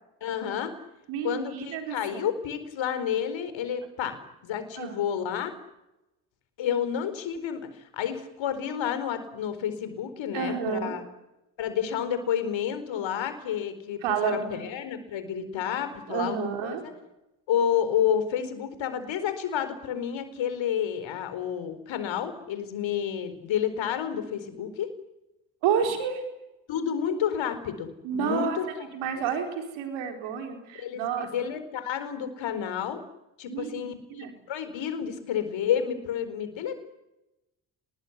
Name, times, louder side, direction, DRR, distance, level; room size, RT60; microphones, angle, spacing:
voice 1, 0.2-0.7 1.2-4.2 4.4-5.5 6.6-11.0 11.6-16.9 17.5-24.9 26.7-28.7 30.8-33.0 33.4-36.8, left 9 dB, 75° left, 10 dB, 4.6 m, -30 dB
voice 2, 1.1-2.2 4.8-5.2 10.3-11.0 14.0-14.6 16.1-16.8 25.6-26.2 28.0-28.6 28.9-31.3 33.4-34.3, right 7 dB, 90° right, 5 dB, 4.5 m, -30 dB
27.5 x 21.0 x 9.7 m, 0.94 s
supercardioid pair, 65°, 46 cm